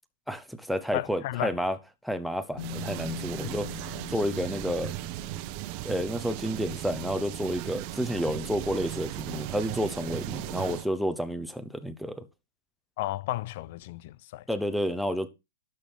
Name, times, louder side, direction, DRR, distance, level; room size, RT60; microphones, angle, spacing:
voice 1, 0.3-1.8 2.0-4.9 5.8-12.3 14.5-15.3, equal, ahead, 1.0 m, -30 dB
voice 2, 0.9-1.6 3.4-3.5 13.0-14.4, left 16 dB, 50° left, 0.6 m, -33 dB
Bass guitar, 2.6-6.5 7.6-7.7, left 12 dB, 70° left, 1.8 m, -43 dB
sound 1, 2.6-10.9, right 15 dB, 40° right, 1.0 m, -37 dB
12.0 x 6.3 x 5.4 m
hypercardioid pair, 145°, 0 cm